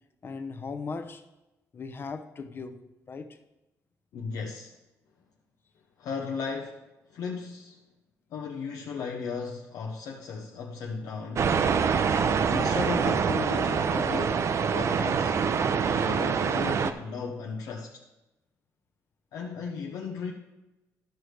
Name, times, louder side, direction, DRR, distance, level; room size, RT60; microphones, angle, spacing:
voice 1, 0.2-1.2 1.7-2.8 3.1-3.3, left 4 dB, 35° left, 0.7 m, -37 dB
voice 2, 4.1-4.7 6.0-6.8 7.1-7.8 8.3-11.5 12.5-15.4 15.9-18.0 19.3-20.3, left 5 dB, 75° left, 0.8 m, -36 dB
sound 1, 11.4-16.9, right 6 dB, 50° right, 0.5 m, -25 dB
11.5 x 6.3 x 3.2 m
cardioid pair, 100°, 6 cm